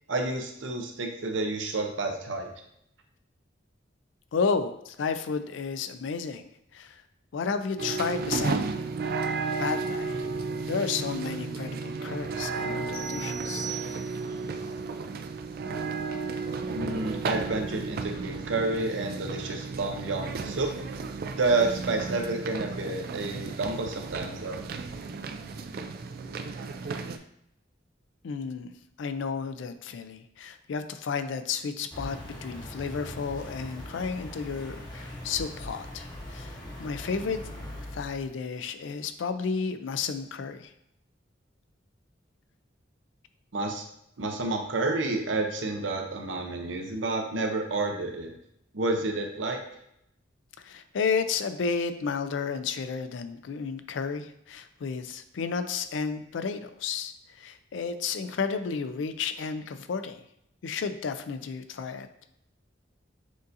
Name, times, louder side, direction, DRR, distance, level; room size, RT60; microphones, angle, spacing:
voice 1, 0.1-2.5 16.7-20.7 21.4-24.6 43.5-43.8 44.2-48.4 48.7-49.6, right 2 dB, 85° right, 3 dB, 0.7 m, -30 dB
voice 2, 4.3-7.0 7.3-8.6 9.6-10.2 10.6-13.7 28.2-37.4 37.9-40.7 50.6-60.2 60.6-62.1, left 5 dB, 75° left, 10 dB, 0.4 m, -32 dB
sound 1, 7.8-27.2, right 4 dB, 55° right, 0.3 m, -33 dB
sound 2, 12.9-14.4, right 7 dB, 55° left, 1.2 m, -39 dB
sound 3, 31.9-38.3, left 1 dB, 20° left, 0.9 m, -41 dB
6.3 x 2.7 x 2.5 m, 0.75 s
head